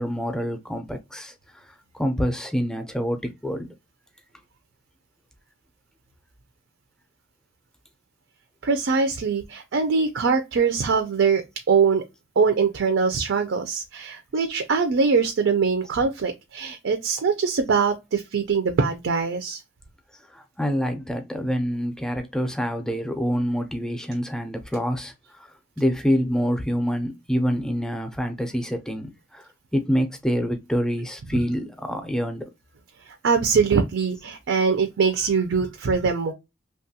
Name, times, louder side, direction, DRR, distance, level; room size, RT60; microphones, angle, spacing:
voice 1, 0.0-1.3 1.6-3.7 20.3-32.5, equal, 5° left, 0.4 m, -26 dB
voice 2, 8.6-12.0 12.4-19.6 33.2-36.3, right 5 dB, 85° right, 0.5 m, -22 dB
2.9 x 2.3 x 2.7 m
head